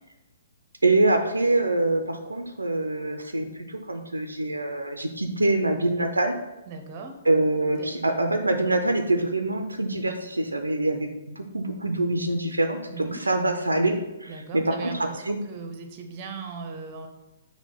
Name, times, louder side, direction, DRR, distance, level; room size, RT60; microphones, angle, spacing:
voice 1, 0.8-6.4 7.3-14.9 15.2-15.4, right 2 dB, 85° right, 5 dB, 0.4 m, -25 dB
voice 2, 6.7-7.2 7.8-8.3 12.9-13.2 14.3-17.1, right 4 dB, 35° right, 4 dB, 0.7 m, -38 dB
5.2 x 2.1 x 4.5 m, 0.97 s
figure-of-eight pair, 125°, 0 cm